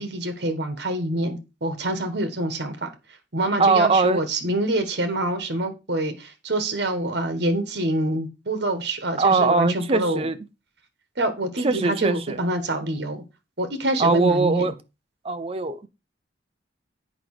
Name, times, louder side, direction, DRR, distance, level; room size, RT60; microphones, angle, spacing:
voice 1, 0.0-2.9 3.3-10.3 11.2-13.2 13.6-14.7, right 1 dB, 60° right, 1.5 m, -26 dB
voice 2, 3.6-4.2 9.2-10.4 11.6-12.4 14.0-14.7 15.2-15.9, right 4 dB, 30° right, 0.7 m, -21 dB
7.9 x 5.1 x 4.9 m
head